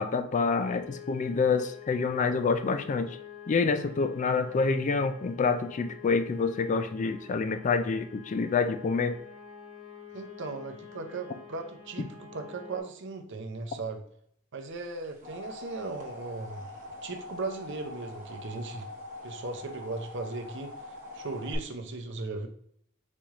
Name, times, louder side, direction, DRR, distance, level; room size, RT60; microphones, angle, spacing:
voice 1, 0.0-3.2 3.5-9.2, left 4 dB, 35° left, 9 dB, 0.3 m, -27 dB
sound 1, 0.6-12.8, left 8 dB, 90° left, 1.5 m, -48 dB
voice 2, 10.1-14.0 14.5-16.7 17.0-18.9 19.2-22.5, right 3 dB, 60° right, 6 dB, 0.6 m, -37 dB
sound 2, 14.8-21.5, left 2 dB, 40° right, 1.0 m, -44 dB
4.2 x 3.2 x 3.5 m, 0.67 s
head